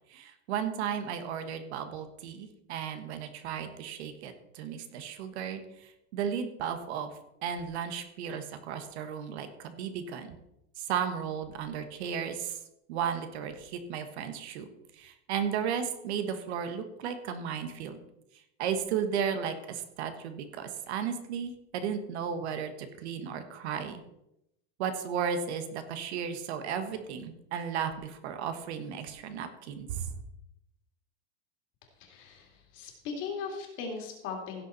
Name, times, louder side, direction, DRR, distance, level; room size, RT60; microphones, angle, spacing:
voice 1, 0.1-7.1 7.4-10.3 10.8-12.6 12.9-14.7 15.0-18.0 18.6-24.0 24.8-30.1, right 7 dB, 70° right, 9 dB, 1.5 m, -34 dB
voice 2, 32.0-34.6, left 5 dB, 35° left, 2 dB, 2.4 m, -38 dB
16.0 x 6.8 x 4.3 m, 0.84 s
supercardioid pair, 180°, 35 cm